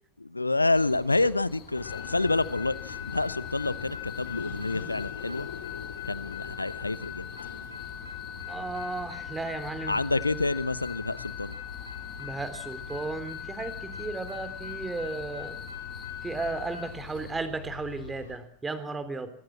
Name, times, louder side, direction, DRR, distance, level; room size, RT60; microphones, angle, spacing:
voice 1, 0.2-5.5 6.1-7.3 9.9-11.5, left 2 dB, 80° left, 18 dB, 1.0 m, -28 dB
sound 1, 0.7-17.4, left 6 dB, 30° left, 7.0 m, -50 dB
sound 2, 1.7-18.4, left 8 dB, 65° left, 4.4 m, -39 dB
voice 2, 8.5-10.0 12.2-15.6 16.2-19.3, right 3 dB, 15° right, 13 dB, 3.2 m, -35 dB
24.0 x 24.0 x 7.4 m, 0.66 s
figure-of-eight pair, 90°, 0 cm